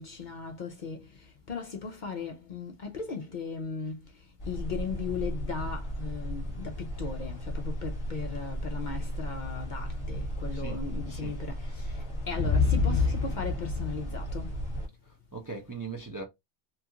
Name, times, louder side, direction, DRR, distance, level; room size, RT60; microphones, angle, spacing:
voice 1, 0.0-4.0 4.5-14.6, left 5 dB, 55° left, 0.6 m, -37 dB
sound 1, 4.4-14.9, left 2 dB, 30° left, 1.1 m, -32 dB
voice 2, 15.0-16.2, right 4 dB, 25° right, 0.4 m, -40 dB
3.0 x 2.4 x 2.7 m
omnidirectional pair, 1.2 m